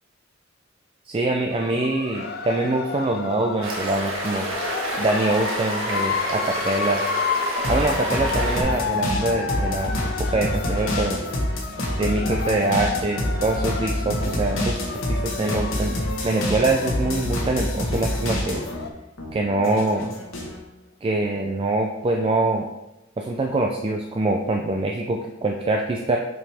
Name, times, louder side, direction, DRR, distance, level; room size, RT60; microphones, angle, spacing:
voice 1, 1.1-4.5 5.0-7.0 7.7-11.2 12.0-15.9 16.2-18.6 19.3-20.1 21.0-22.7 23.2-26.2, right 2 dB, 25° right, 2 dB, 0.4 m, -24 dB
sound 1, 1.5-18.9, left 5 dB, 50° left, 0.6 m, -31 dB
sound 2, 3.6-8.6, right 2 dB, 85° right, 1.3 m, -29 dB
sound 3, 7.6-18.8 19.2-20.6, left 1 dB, 85° left, 1.3 m, -27 dB
5.9 x 4.8 x 3.4 m, 0.95 s
head